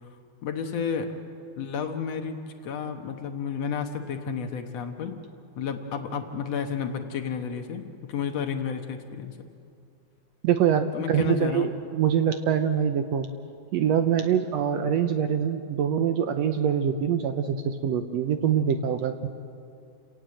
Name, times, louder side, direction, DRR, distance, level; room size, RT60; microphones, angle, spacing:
voice 1, 0.4-1.1 1.6-5.1 5.6-7.8 8.1-9.4 10.9-11.7, left 6 dB, 60° left, 5 dB, 2.2 m, -31 dB
voice 2, 10.4-13.3 13.7-19.3, right 8 dB, 70° right, 8 dB, 1.7 m, -24 dB
29.0 x 18.0 x 7.7 m, 2.5 s
omnidirectional pair, 3.6 m